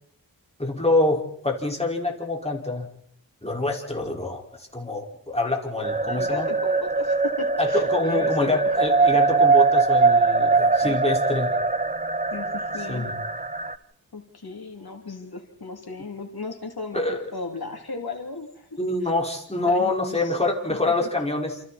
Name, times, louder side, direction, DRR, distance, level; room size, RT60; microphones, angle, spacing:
voice 1, 0.6-2.9 3.4-6.5 7.6-11.5 12.9-13.1 16.9-17.2 18.8-21.6, left 2 dB, 15° left, -1 dB, 5.1 m, -26 dB
sound 1, 5.8-13.7, right 4 dB, 20° right, 1.0 m, -22 dB
voice 2, 6.0-8.7 10.8-11.0 12.3-13.2 14.1-18.8 19.6-20.4 20.7-21.1, left 3 dB, 90° left, 3 dB, 3.0 m, -36 dB
28.5 x 28.0 x 4.3 m, 0.66 s
wide cardioid pair, 55°, 36 cm